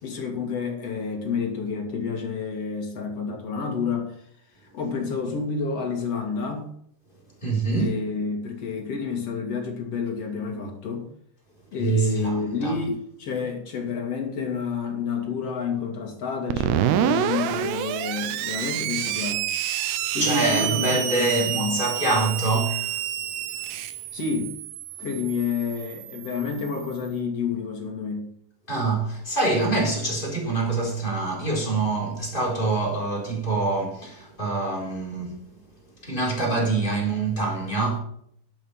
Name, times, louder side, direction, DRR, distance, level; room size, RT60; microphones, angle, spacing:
voice 1, 0.0-4.2 4.6-6.7 7.7-11.1 11.7-19.5 20.1-21.8 24.1-24.5 25.0-28.3, left 5 dB, 45° left, 2.2 m, -29 dB
voice 2, 7.4-7.9 11.8-12.7 20.2-23.0 28.7-35.4 36.0-38.0, right 3 dB, 10° left, 3.2 m, -25 dB
Screech, 16.5-27.0, right 12 dB, 85° right, 3.5 m, -28 dB
11.5 x 7.8 x 5.6 m
omnidirectional pair, 5.7 m